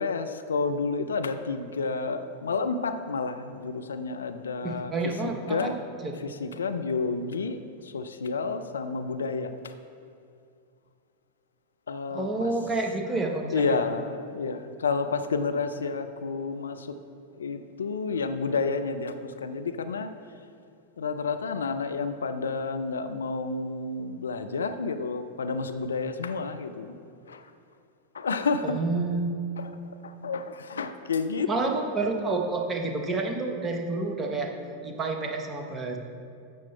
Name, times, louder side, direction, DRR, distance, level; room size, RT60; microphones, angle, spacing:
voice 1, 0.0-4.9 5.2-5.8 6.2-9.7 11.9-12.5 13.5-17.0 17.3-20.1 21.0-27.0 27.3-27.5 28.1-28.8 29.6-29.7 30.0-31.7, left 4 dB, 70° left, 9 dB, 0.3 m, -30 dB
voice 2, 4.6-5.7 6.0-6.2 12.1-13.8 28.6-29.3 31.5-34.5 34.8-36.0, right 3 dB, 20° right, 2 dB, 0.9 m, -29 dB
11.5 x 7.3 x 2.2 m, 2.4 s
figure-of-eight pair, 90°, 0 cm